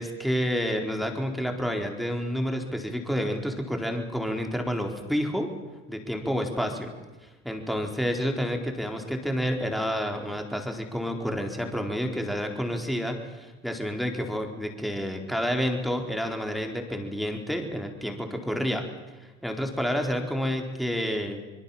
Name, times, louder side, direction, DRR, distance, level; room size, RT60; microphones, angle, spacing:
voice 1, 0.0-5.5 5.9-6.9 7.2-18.8 19.2-21.4, equal, ahead, 3 dB, 4.2 m, -29 dB
26.0 x 22.0 x 7.3 m, 1.2 s
supercardioid pair, 90°, 35 cm